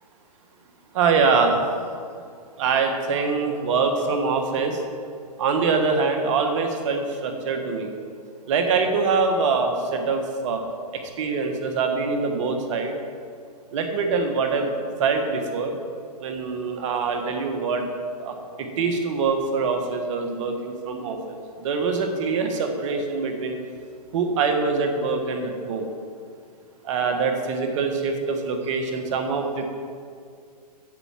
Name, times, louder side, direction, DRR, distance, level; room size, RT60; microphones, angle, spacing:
voice 1, 0.9-1.6 2.6-4.8 5.4-7.9 8.5-10.6 10.9-12.9 13.7-14.7 15.0-15.7 16.2-17.8 18.2-23.6 24.1-25.9 26.8-29.6, right 4 dB, 50° right, 5 dB, 1.5 m, -24 dB
8.2 x 7.0 x 7.3 m, 2.3 s
hypercardioid pair, 135°, 20 cm